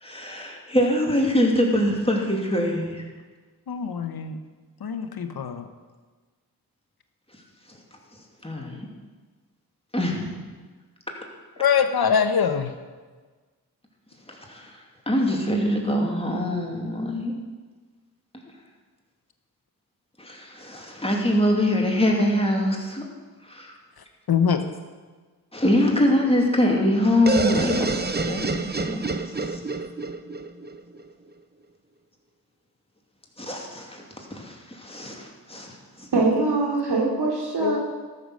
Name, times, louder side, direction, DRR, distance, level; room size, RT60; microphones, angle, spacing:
voice 1, 0.0-3.0 8.4-8.9 9.9-10.3 14.3-14.7 15.1-17.3 20.2-23.0 23.5-23.7 25.5-29.1 29.5-29.6 33.4-35.7 36.0-36.1, left 1 dB, 15° left, -1 dB, 2.8 m, -24 dB
voice 2, 3.7-4.4 4.8-5.7 11.6-12.7 24.3-24.6 37.6-37.8, left 7 dB, 70° left, 8 dB, 1.0 m, -23 dB
sound 1, 27.3-31.0, right 3 dB, 25° right, 0.9 m, -27 dB
voice 3, 36.1-37.8, right 3 dB, 75° right, -2 dB, 3.0 m, -22 dB
13.5 x 6.8 x 6.4 m, 1.4 s
cardioid pair, 45°, 39 cm